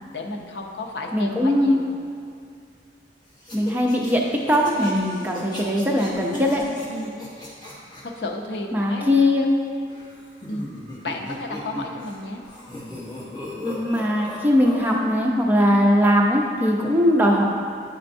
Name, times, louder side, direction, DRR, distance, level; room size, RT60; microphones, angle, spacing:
voice 1, 0.0-1.9 6.9-7.2 8.0-9.1 10.5-10.7 11.0-12.4, left 2 dB, 70° left, 2 dB, 0.6 m, -32 dB
voice 2, 1.1-1.8 3.5-6.6 8.7-9.5 13.6-17.5, left 1 dB, 10° right, -2 dB, 0.5 m, -20 dB
sound 1, 3.4-8.0 9.9-12.2 12.4-14.9, left 1 dB, 25° left, 1.0 m, -36 dB
8.9 x 4.3 x 2.6 m, 2.3 s
head